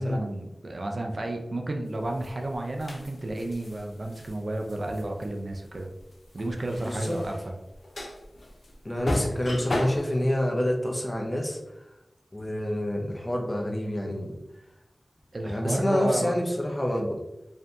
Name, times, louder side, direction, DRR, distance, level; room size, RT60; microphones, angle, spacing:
voice 1, 0.0-5.9 6.3-7.5 15.3-16.3, right 1 dB, 65° right, 3 dB, 0.4 m, -32 dB
sound 1, 2.0-10.2, left 1 dB, 70° left, 0.4 m, -35 dB
voice 2, 6.8-7.2 8.8-11.6 12.3-14.4 15.5-17.2, left 1 dB, 25° left, 0 dB, 0.6 m, -27 dB
2.6 x 2.5 x 2.2 m, 0.90 s
cardioid pair, 40°, 0 cm